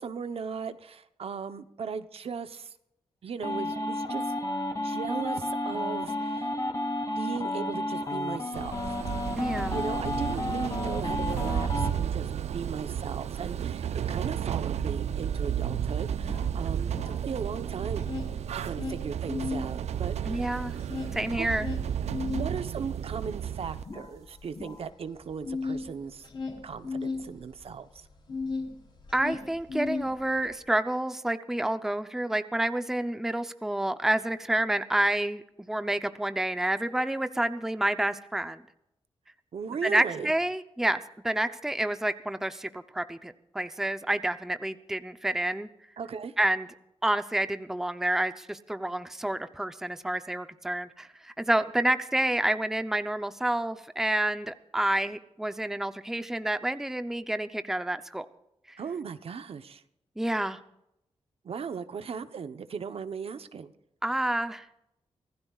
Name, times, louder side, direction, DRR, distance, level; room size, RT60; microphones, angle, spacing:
voice 1, 0.0-2.7 3.2-4.3 4.8-6.6 7.2-9.0 9.7-20.6 21.4-21.5 22.3-26.2 26.6-28.1 39.5-40.3 46.0-46.3 58.8-59.8 61.4-63.7, right 6 dB, 65° right, 10 dB, 0.9 m, -37 dB
sound 1, 3.4-11.9, left 1 dB, 35° left, 2.7 m, -32 dB
sound 2, 8.5-23.8, right 9 dB, 90° right, 0.5 m, -32 dB
voice 2, 9.4-9.9 20.3-20.7 21.1-21.7 29.1-38.6 39.8-45.7 46.4-46.7 47.0-58.3 58.7-58.8 60.2-60.6 64.0-64.6, right 1 dB, 5° right, 10 dB, 0.6 m, -29 dB
sound 3, 15.5-17.5 17.8-19.7 20.1-28.7 29.0-30.5, left 4 dB, 50° left, 3.8 m, -36 dB
25.5 x 16.5 x 2.4 m, 0.82 s
wide cardioid pair, 135°, 11 cm